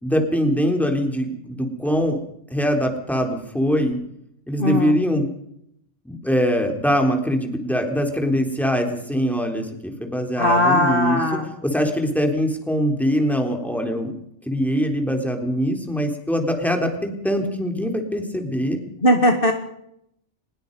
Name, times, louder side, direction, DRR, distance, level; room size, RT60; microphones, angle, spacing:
voice 1, 0.0-2.2 2.5-4.0 4.5-5.3 6.1-11.2 11.6-14.1 14.5-18.8, equal, ahead, 3 dB, 3.5 m, -22 dB
voice 2, 4.6-4.9 10.4-11.5 19.0-19.5, left 1 dB, 45° left, 4 dB, 2.1 m, -18 dB
23.5 x 21.0 x 5.4 m, 0.75 s
omnidirectional pair, 1.3 m